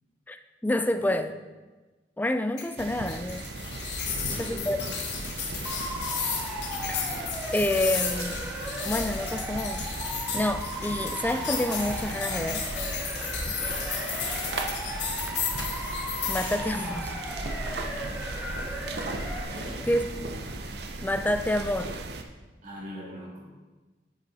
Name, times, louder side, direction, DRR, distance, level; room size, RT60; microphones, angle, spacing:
voice 1, 0.3-1.3 2.2-3.5 4.3-4.8 6.9-7.2 7.5-8.4 8.8-9.8 10.3-12.6 16.3-17.1 19.9-20.3 21.0-21.9, left 1 dB, 10° left, 9 dB, 0.4 m, -28 dB
voice 2, 0.8-1.3 4.0-4.9 19.5-19.9 22.6-23.5, equal, 45° right, -5 dB, 2.9 m, -41 dB
sound 1, 2.6-16.6, left 6 dB, 70° left, 1.3 m, -34 dB
sound 2, 2.8-22.2, right 2 dB, 65° right, 0.7 m, -37 dB
Motor vehicle (road) / Siren, 5.6-19.4, equal, 5° right, 0.9 m, -36 dB
8.1 x 6.6 x 4.1 m, 1.2 s
head